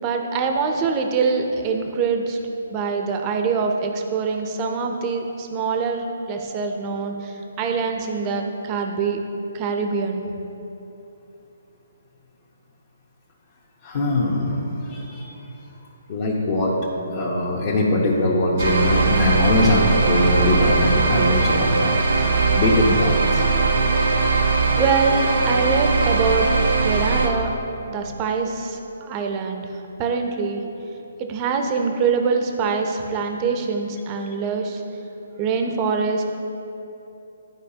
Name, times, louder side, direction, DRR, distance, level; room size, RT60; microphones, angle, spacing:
voice 1, 0.0-2.4 2.7-9.2 9.5-10.2 24.8-26.5 26.8-27.5 27.9-29.7 30.0-30.6 31.2-34.8 35.4-36.2, right 5 dB, 25° right, 4 dB, 0.7 m, -24 dB
voice 2, 13.8-15.3 16.1-16.8 17.1-23.5, left 1 dB, 45° left, -6 dB, 1.1 m, -21 dB
sound 1, 18.6-27.3, right 4 dB, 80° right, 1.1 m, -20 dB
12.0 x 4.6 x 2.8 m, 3.0 s
hypercardioid pair, 145°, 0 cm